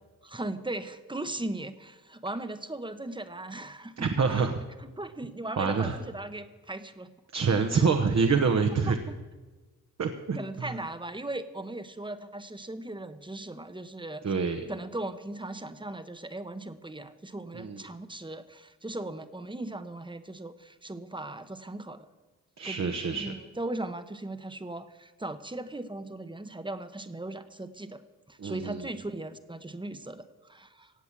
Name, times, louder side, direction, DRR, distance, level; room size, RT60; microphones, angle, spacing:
voice 1, 0.2-4.5 4.8-7.1 7.7-7.8 8.9-9.2 10.3-14.2 14.7-22.1 22.6-22.8 23.1-28.0 28.3-30.9, right 2 dB, 15° right, 11 dB, 1.0 m, -38 dB
voice 2, 4.0-4.6 5.6-6.0 7.3-9.0 10.0-10.7 14.2-14.7 17.5-17.8 22.6-23.3 28.4-28.8, right 5 dB, 55° right, 5 dB, 1.1 m, -26 dB
16.5 x 8.1 x 7.4 m, 1.3 s
cardioid pair, 70°, 33 cm